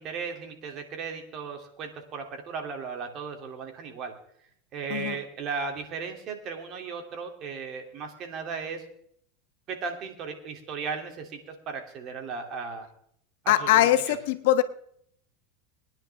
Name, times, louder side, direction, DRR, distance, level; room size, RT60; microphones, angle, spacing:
voice 1, 0.0-4.1 4.7-8.8 9.7-12.9 13.4-14.2, right 5 dB, 45° right, 4 dB, 2.9 m, -36 dB
voice 2, 13.5-14.6, left 13 dB, 75° left, 9 dB, 1.2 m, -22 dB
21.0 x 10.5 x 3.6 m, 0.67 s
supercardioid pair, 115°, 0 cm